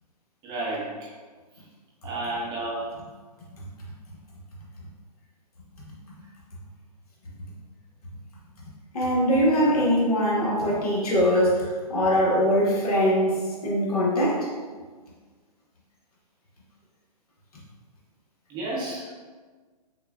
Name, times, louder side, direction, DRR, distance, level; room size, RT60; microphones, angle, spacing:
voice 1, 0.4-0.9 2.0-3.0 9.6-9.9 18.5-19.1, right 2 dB, 20° right, -5 dB, 0.8 m, -31 dB
voice 2, 8.9-14.5, equal, 65° left, -5 dB, 1.4 m, -22 dB
6.3 x 2.3 x 2.4 m, 1.4 s
hypercardioid pair, 130°, 21 cm